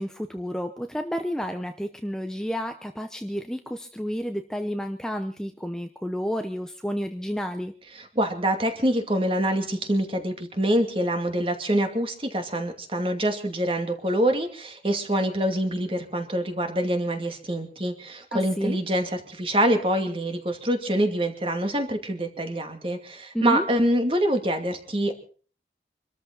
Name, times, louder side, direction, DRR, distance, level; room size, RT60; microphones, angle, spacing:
voice 1, 0.0-7.7 18.3-18.8 23.3-23.6, equal, 5° left, 6 dB, 0.8 m, -30 dB
voice 2, 8.2-25.1, right 1 dB, 30° right, 5 dB, 2.5 m, -25 dB
26.0 x 13.5 x 4.0 m, 0.41 s
head